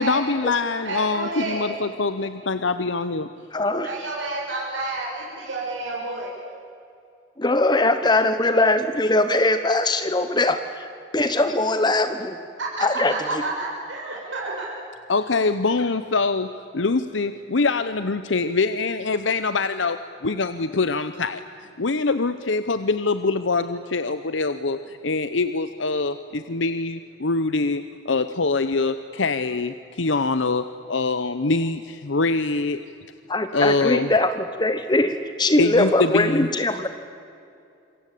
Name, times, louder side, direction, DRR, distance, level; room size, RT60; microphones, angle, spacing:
voice 1, 0.0-3.3 15.1-21.4 21.8-32.8 33.5-34.1 35.6-36.5, left 3 dB, 80° left, 11 dB, 0.9 m, -24 dB
voice 2, 0.8-1.9 3.8-6.3 12.6-14.7, right 2 dB, 85° right, -4 dB, 6.4 m, -30 dB
voice 3, 3.5-3.9 7.4-10.9 11.1-12.4 12.8-13.4 33.3-36.9, left 2 dB, 25° left, 9 dB, 1.1 m, -21 dB
27.0 x 24.0 x 8.5 m, 2.6 s
head